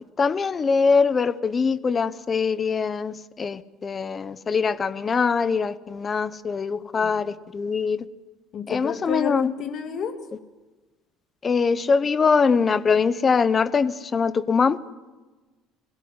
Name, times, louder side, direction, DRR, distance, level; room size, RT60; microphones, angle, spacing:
voice 1, 0.0-8.0 8.7-9.5 11.4-14.8, left 5 dB, 20° left, 15 dB, 0.7 m, -23 dB
voice 2, 6.8-7.2 8.5-10.2, left 7 dB, 35° left, 6 dB, 2.2 m, -31 dB
23.5 x 17.0 x 9.6 m, 1.2 s
cardioid pair, 180°, 0 cm